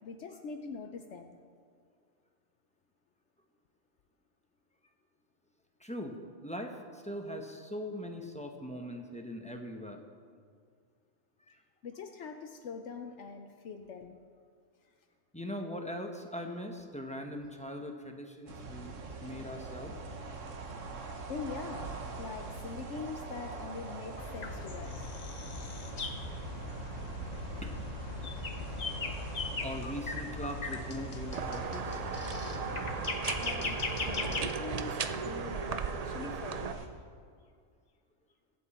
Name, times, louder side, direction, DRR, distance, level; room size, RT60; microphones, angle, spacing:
voice 1, 0.0-1.4 11.8-14.2 21.3-21.9 22.2-25.1 33.4-36.8, left 5 dB, 70° left, 5 dB, 1.0 m, -43 dB
voice 2, 5.8-6.2 6.4-10.0 11.5-11.6 15.3-19.9 27.6-27.8 29.6-32.0, equal, 5° left, 3 dB, 0.9 m, -41 dB
sound 1, 18.5-36.9, right 3 dB, 80° right, 1.5 m, -43 dB
sound 2, 24.2-34.5, left 4 dB, 40° left, 0.8 m, -39 dB
sound 3, 31.3-36.7, right 6 dB, 55° right, 0.4 m, -37 dB
23.0 x 7.7 x 4.3 m, 2.1 s
omnidirectional pair, 1.3 m